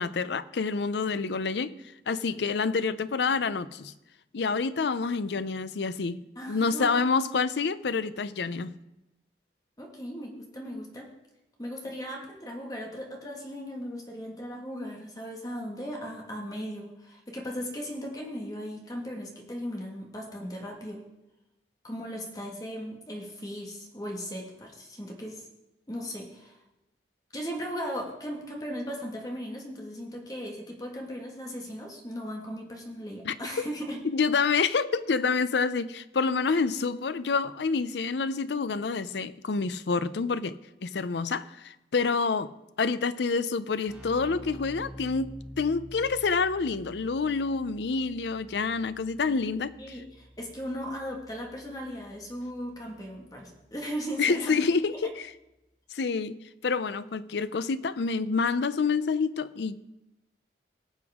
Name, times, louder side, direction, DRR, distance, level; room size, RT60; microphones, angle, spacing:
voice 1, 0.0-1.8 2.1-3.9 4.3-6.2 6.5-8.7 33.2-33.7 34.0-42.5 42.8-49.8 54.2-55.3 55.9-56.4 56.6-59.8, left 4 dB, 75° left, 0.5 m, -28 dB
voice 2, 6.4-7.0 9.8-11.1 11.6-21.0 21.8-25.5 25.9-26.6 27.3-34.0 36.5-36.6 49.8-54.6, equal, 20° left, 1.8 m, -37 dB
Keyboard (musical), 43.9-54.2, equal, 5° right, 2.2 m, -49 dB
18.5 x 7.9 x 3.6 m
head